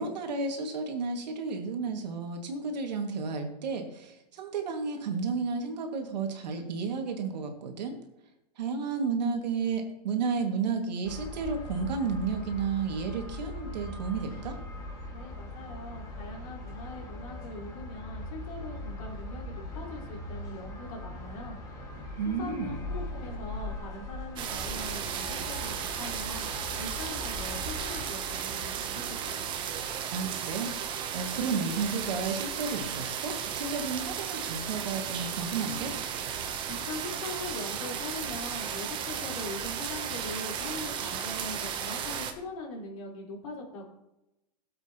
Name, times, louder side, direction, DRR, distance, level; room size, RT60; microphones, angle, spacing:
voice 1, 0.0-8.0 8.6-14.6 22.2-22.8 30.1-30.9 31.1-35.9, right 5 dB, 85° right, 3 dB, 2.2 m, -32 dB
sound 1, 11.0-28.0, left 2 dB, 15° left, 2.0 m, -40 dB
voice 2, 15.1-21.6 22.3-26.5 26.8-29.5 36.7-43.8, left 2 dB, 55° left, -3 dB, 4.1 m, -41 dB
sound 2, 24.4-42.3, right 8 dB, 25° right, 0.9 m, -35 dB
16.0 x 7.9 x 3.0 m, 0.91 s
supercardioid pair, 160°, 21 cm